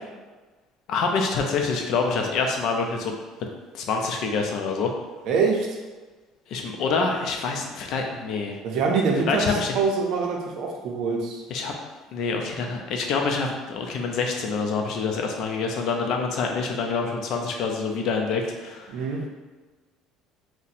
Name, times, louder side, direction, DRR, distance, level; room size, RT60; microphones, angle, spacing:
voice 1, 0.9-3.2 3.7-4.9 6.5-8.6 9.3-9.7 11.5-11.7 12.1-19.1, left 4 dB, 55° left, 2 dB, 0.5 m, -26 dB
voice 2, 5.2-5.7 8.6-11.4 18.9-19.2, right 4 dB, 55° right, 0 dB, 0.6 m, -24 dB
2.7 x 2.1 x 4.0 m, 1.3 s
cardioid pair, 155°, 0 cm